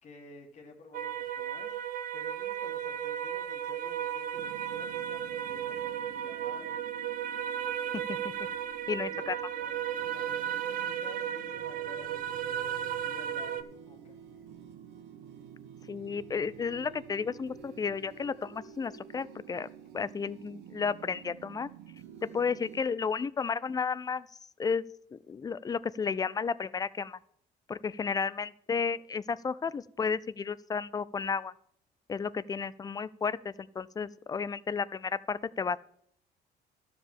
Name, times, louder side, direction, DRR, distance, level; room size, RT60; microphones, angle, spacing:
voice 1, 0.0-1.8 2.1-6.8 9.0-14.2, left 3 dB, 40° left, 3 dB, 1.6 m, -52 dB
sound 1, 0.9-13.6, right 9 dB, 55° right, 0.7 m, -35 dB
sound 2, 4.3-22.8, right 8 dB, 90° right, 1.2 m, -50 dB
voice 2, 8.9-9.4 15.9-19.7 19.9-21.7 22.3-24.3 24.6-24.8 25.1-27.2 27.7-31.5 32.1-35.8, left 5 dB, 20° left, 19 dB, 0.4 m, -32 dB
12.5 x 5.1 x 7.1 m, 0.68 s
cardioid pair, 110°, 17 cm